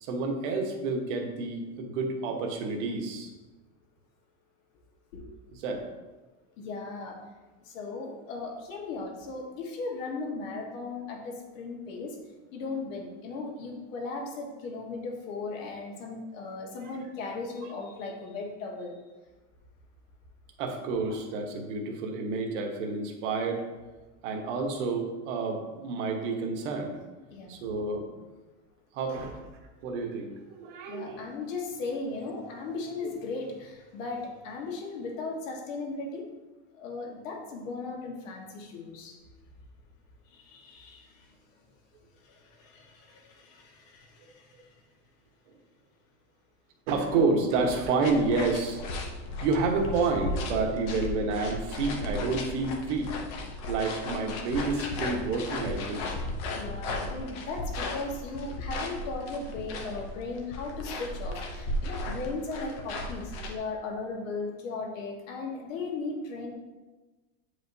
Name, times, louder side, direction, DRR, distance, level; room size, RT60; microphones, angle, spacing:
voice 1, 0.0-3.3 5.6-5.9 20.6-23.6 24.2-27.0 27.5-28.2 28.9-29.4 29.8-31.2 33.0-33.1 46.9-48.8 49.4-53.1 53.7-56.1, right 3 dB, 65° right, 3 dB, 1.2 m, -29 dB
voice 2, 6.6-7.2 7.6-12.2 12.5-19.0 27.3-27.5 30.9-36.2 36.7-39.2 40.3-41.4 42.2-44.7 56.5-66.5, left 3 dB, 80° left, 0 dB, 1.7 m, -37 dB
sound 1, 48.0-63.6, left 1 dB, 40° left, 0.9 m, -35 dB
8.6 x 4.9 x 2.8 m, 1.2 s
supercardioid pair, 170°, 38 cm